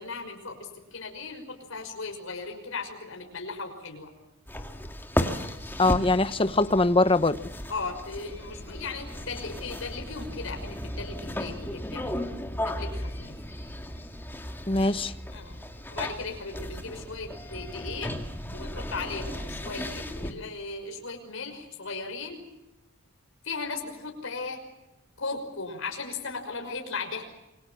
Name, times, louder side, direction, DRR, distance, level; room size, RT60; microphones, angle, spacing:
voice 1, 0.0-4.1 7.7-12.4 12.6-13.4 15.3-15.6 15.9-18.1 18.5-22.5 23.4-24.6 25.2-27.2, left 4 dB, 70° left, 3 dB, 5.9 m, -37 dB
sound 1, 4.5-20.3, left 1 dB, 10° left, 2.3 m, -35 dB
voice 2, 5.8-7.4 14.7-15.1, left 2 dB, 25° left, 12 dB, 1.0 m, -22 dB
28.5 x 23.0 x 7.5 m, 0.94 s
head